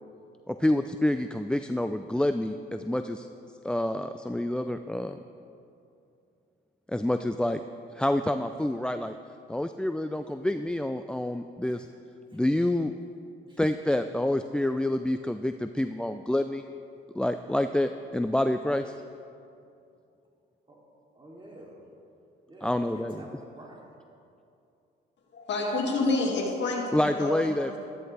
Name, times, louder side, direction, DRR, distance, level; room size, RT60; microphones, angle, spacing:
voice 1, 0.5-3.3 3.6-5.2 6.9-7.6 7.9-9.2 9.5-11.9 12.3-12.9 13.6-16.6 17.1-18.9 22.6-23.3 26.9-27.8, left 1 dB, 5° left, 8 dB, 0.3 m, -28 dB
voice 2, 21.1-21.8 22.5-24.0, right 1 dB, 25° right, -2 dB, 2.8 m, -48 dB
voice 3, 25.3-27.8, left 2 dB, 60° left, 0 dB, 2.2 m, -28 dB
13.0 x 12.0 x 3.3 m, 2.6 s
supercardioid pair, 65°, 21 cm